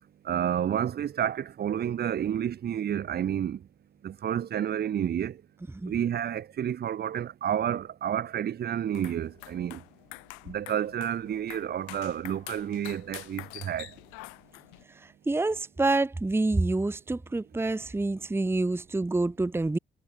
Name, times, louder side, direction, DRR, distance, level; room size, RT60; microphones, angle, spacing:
voice 1, 0.2-3.6 4.0-5.4 5.9-9.8 10.4-13.9, right 9 dB, 60° right, 1.4 m, -30 dB
sound 1, 8.8-14.8, left 39 dB, 90° left, 2.0 m, -46 dB
voice 2, 14.9-19.8, right 2 dB, 10° right, 0.8 m, -27 dB
supercardioid pair, 55°, 19 cm